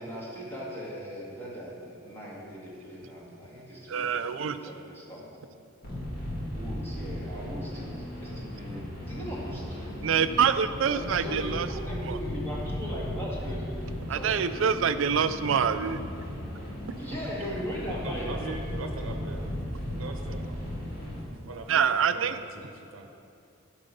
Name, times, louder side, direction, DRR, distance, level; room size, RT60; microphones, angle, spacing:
voice 1, 0.0-5.2 6.5-10.1 10.9-14.4 17.0-18.6, equal, 10° left, -6 dB, 1.9 m, -39 dB
voice 2, 3.9-4.6 10.0-11.7 12.0-12.2 14.1-16.0 16.8-17.0 21.7-22.4, right 7 dB, 70° right, 11 dB, 0.4 m, -26 dB
sound 1, 5.8-21.2, left 1 dB, 45° left, 2.4 m, -36 dB
voice 3, 18.0-19.6 19.8-20.8 21.5-23.1, right 2 dB, 90° right, 4 dB, 0.8 m, -41 dB
12.0 x 4.8 x 5.4 m, 2.5 s
head